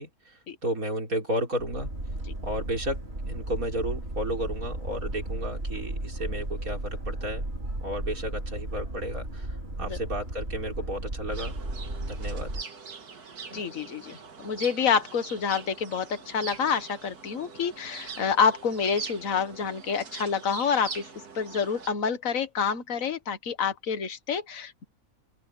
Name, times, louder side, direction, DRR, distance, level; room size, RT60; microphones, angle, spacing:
voice 1, 0.0-1.9 2.4-7.4 7.8-11.6 12.0-12.5, equal, 65° right, 5.8 m, -33 dB
Boat Water vehicle, 1.6-12.6, right 1 dB, 40° right, 4.1 m, -35 dB
sound 1, 11.3-21.9, right 5 dB, 85° right, 2.4 m, -42 dB
voice 2, 13.5-21.0 21.4-24.8, left 6 dB, 60° left, 1.8 m, -28 dB
open air
omnidirectional pair, 1.6 m